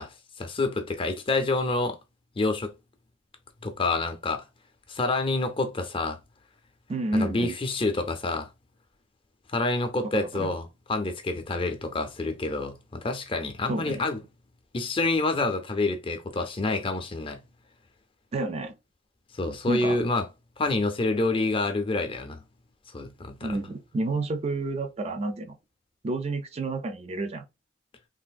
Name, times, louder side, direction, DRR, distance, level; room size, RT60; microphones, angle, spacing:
voice 1, 0.0-2.0 2.4-2.7 3.6-4.4 4.9-6.2 7.1-8.5 9.5-14.2 14.7-17.4 19.3-20.3 20.6-22.4 22.9-23.6, left 2 dB, 30° left, 0.5 m, -28 dB
voice 2, 6.9-7.6 10.1-10.5 13.7-14.0 18.3-18.7 19.7-20.0 23.4-25.6 26.0-27.5, right 2 dB, 35° right, 0.4 m, -30 dB
3.4 x 2.5 x 2.3 m
head